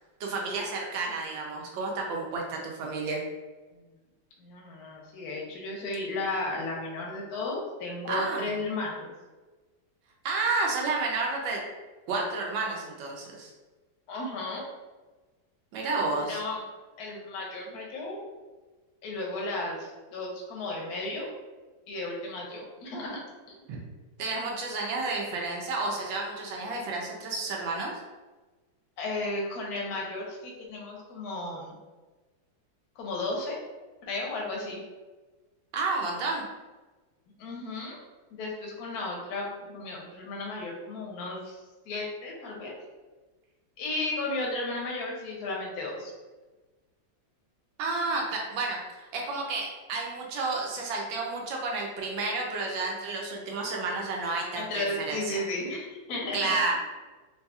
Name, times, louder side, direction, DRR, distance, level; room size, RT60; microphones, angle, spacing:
voice 1, 0.2-3.2 8.1-8.5 10.2-11.6 12.1-13.5 15.7-16.4 23.7-23.8 24.2-27.9 35.7-36.5 47.8-55.4 56.3-56.7, right 3 dB, 75° right, 0 dB, 1.3 m, -31 dB
voice 2, 4.4-9.1 14.1-14.6 16.1-16.6 17.0-18.2 19.0-21.3 21.9-23.6 29.0-31.8 33.0-33.6 34.1-34.8 37.4-38.0 38.3-42.8 43.8-46.1 54.5-56.7, left 2 dB, 65° left, -2 dB, 1.1 m, -34 dB
3.8 x 2.7 x 2.3 m, 1.2 s
omnidirectional pair, 2.1 m